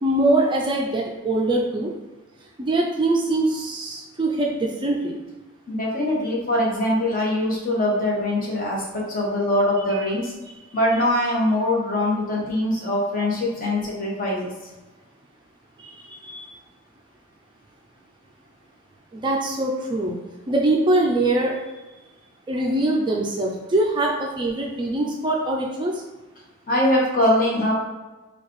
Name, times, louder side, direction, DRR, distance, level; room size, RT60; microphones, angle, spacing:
voice 1, 0.0-1.9 2.6-5.2 9.9-10.0 15.8-16.5 19.1-20.2 20.5-21.6 22.5-26.0, right 2 dB, 20° right, -1 dB, 0.3 m, -23 dB
voice 2, 5.7-10.3 10.7-14.5 26.7-27.7, left 1 dB, 40° left, -4 dB, 1.0 m, -22 dB
4.5 x 2.3 x 3.1 m, 1.2 s
head